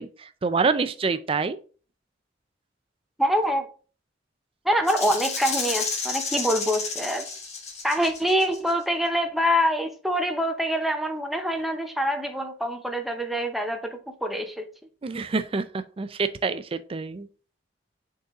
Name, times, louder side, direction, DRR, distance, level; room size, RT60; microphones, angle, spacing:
voice 1, 0.0-1.6 15.0-17.3, right 4 dB, 30° right, 12 dB, 0.4 m, -27 dB
voice 2, 3.2-3.6 4.6-7.2 7.8-14.6, equal, ahead, 4 dB, 0.7 m, -25 dB
Rattle (instrument), 4.9-8.7, left 4 dB, 35° left, 1.3 m, -31 dB
6.6 x 3.9 x 3.6 m, 0.39 s
head